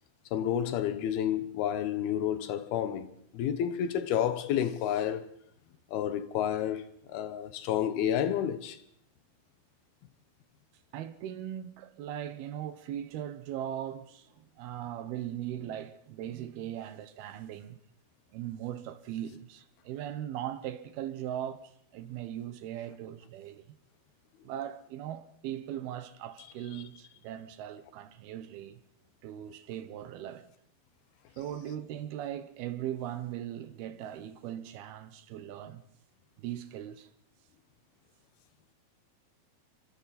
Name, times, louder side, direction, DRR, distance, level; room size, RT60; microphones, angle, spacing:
voice 1, 0.3-3.1 3.3-5.3 5.9-8.8, left 10 dB, 85° left, 3.1 m, -30 dB
voice 2, 10.9-17.8 18.3-23.8 24.4-28.8 29.2-30.5 31.4-35.8 36.4-37.1, right 11 dB, 85° right, 3.1 m, -39 dB
30.0 x 24.0 x 4.2 m
omnidirectional pair, 4.3 m